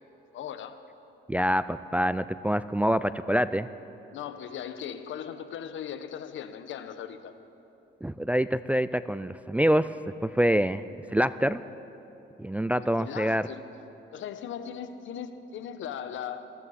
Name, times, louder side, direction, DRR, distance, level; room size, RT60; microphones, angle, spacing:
voice 1, 0.3-0.8 4.1-7.3 12.7-13.7 14.1-16.4, left 8 dB, 75° left, 10 dB, 0.9 m, -38 dB
voice 2, 1.3-3.7 8.0-9.9 10.2-10.8 11.1-11.6 12.4-13.5, equal, 5° right, 13 dB, 0.3 m, -25 dB
21.0 x 15.0 x 4.2 m, 3.0 s
cardioid pair, 90°, 20 cm